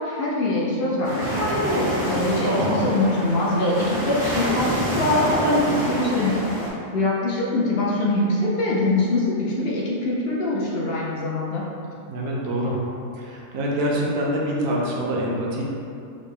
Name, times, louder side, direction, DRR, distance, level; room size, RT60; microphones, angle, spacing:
voice 1, 0.0-4.7 5.0-6.4 6.9-11.6, left 2 dB, 65° left, -5 dB, 0.6 m, -23 dB
sound 1, 1.0-6.7, right 1 dB, 25° right, 0.6 m, -27 dB
voice 2, 2.4-2.9 12.1-12.8 13.1-15.6, equal, 85° right, -3 dB, 1.1 m, -25 dB
3.8 x 2.1 x 3.6 m, 2.5 s
omnidirectional pair, 1.4 m